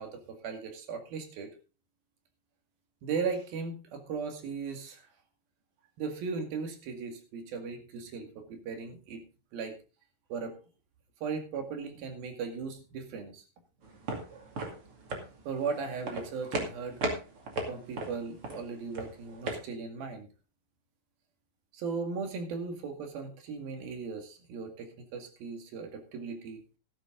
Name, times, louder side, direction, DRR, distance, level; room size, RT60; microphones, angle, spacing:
voice 1, 0.0-1.5 3.0-5.1 6.0-9.2 9.5-9.8 10.3-10.5 11.2-13.4 15.5-17.0 17.7-20.3 21.7-26.6, right 5 dB, 90° right, 5 dB, 4.0 m, -37 dB
sound 1, 13.8-19.6, right 2 dB, 40° right, 3.0 m, -37 dB
13.0 x 11.0 x 3.8 m, 0.33 s
omnidirectional pair, 4.1 m